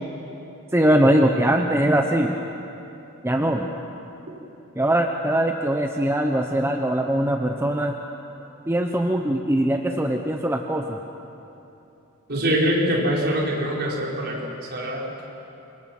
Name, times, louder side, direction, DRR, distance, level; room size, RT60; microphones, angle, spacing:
voice 1, 0.7-2.4 3.2-3.7 4.8-7.9 8.7-11.0, right 1 dB, 10° right, 3 dB, 0.9 m, -21 dB
voice 2, 12.3-15.0, equal, 50° right, -3 dB, 4.8 m, -24 dB
27.5 x 23.5 x 6.0 m, 2.9 s
head